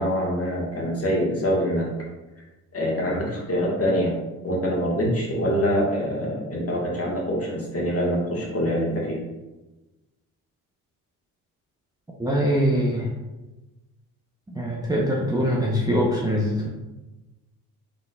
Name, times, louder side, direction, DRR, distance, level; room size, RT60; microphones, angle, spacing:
voice 1, 0.0-1.9 2.7-4.1 4.4-9.2, equal, 35° left, -3 dB, 1.5 m, -25 dB
voice 2, 12.2-13.1 14.5-16.7, equal, 10° right, -4 dB, 0.7 m, -23 dB
3.9 x 3.6 x 2.3 m, 1.1 s
hypercardioid pair, 55°, 43 cm